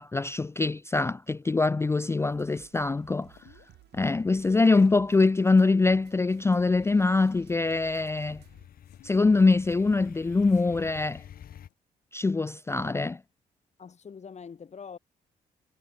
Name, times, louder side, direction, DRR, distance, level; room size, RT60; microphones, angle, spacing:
voice 1, 0.0-3.3 3.9-8.4 9.0-11.2 12.1-13.2, left 3 dB, 15° left, 0.4 m, -24 dB
sound 1, 2.3-8.7, right 14 dB, 75° right, 4.7 m, -57 dB
sound 2, 3.2-11.7, left 17 dB, 80° left, 4.0 m, -60 dB
sound 3, 6.3-11.7, left 10 dB, 60° left, 1.2 m, -50 dB
voice 2, 13.8-15.0, left 6 dB, 45° left, 1.6 m, -43 dB
supercardioid pair, 55°, 17 cm